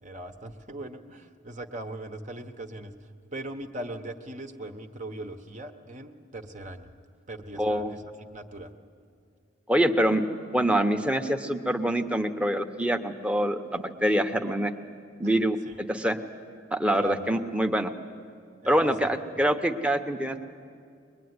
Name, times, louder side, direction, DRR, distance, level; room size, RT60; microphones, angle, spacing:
voice 1, 0.0-6.9 7.3-8.7 15.2-15.3 15.7-15.8 17.0-17.3 18.6-19.1, right 1 dB, 40° right, 5 dB, 1.1 m, -40 dB
voice 2, 7.6-7.9 9.7-10.2 10.5-14.7 15.2-15.6 15.9-16.2 16.7-17.9 18.7-20.4, right 1 dB, 5° right, 5 dB, 1.0 m, -25 dB
23.5 x 21.0 x 9.7 m, 2.3 s
head